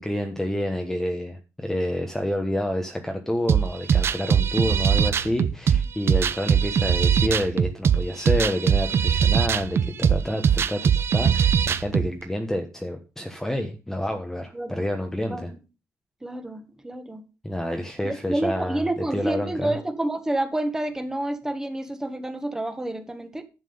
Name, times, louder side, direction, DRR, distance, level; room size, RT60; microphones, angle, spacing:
voice 1, 0.0-15.5 17.4-19.8, left 1 dB, 5° left, 4 dB, 1.2 m, -28 dB
sound 1, 3.5-12.1, right 7 dB, 45° right, 0.7 m, -21 dB
voice 2, 14.5-14.8 15.3-15.6 16.2-17.2 18.0-23.4, right 1 dB, 10° right, 8 dB, 1.6 m, -29 dB
11.5 x 7.5 x 5.5 m, 0.31 s
cardioid pair, 140°, 6 cm